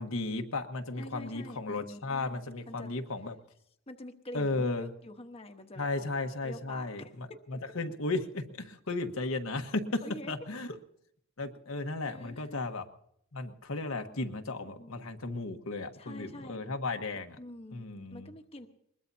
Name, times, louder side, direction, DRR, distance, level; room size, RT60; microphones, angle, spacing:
voice 1, 0.0-3.3 4.3-4.9 5.8-10.0 10.3-10.7 11.4-12.8 13.3-17.4 17.7-18.3, left 2 dB, 85° left, 5 dB, 1.3 m, -35 dB
voice 2, 1.0-2.9 3.9-7.1 10.0-10.3 12.0-12.6 14.8-14.9 15.9-16.6 17.4-17.8 18.1-18.7, left 1 dB, 30° left, 5 dB, 1.1 m, -46 dB
21.5 x 21.0 x 2.7 m, 0.72 s
head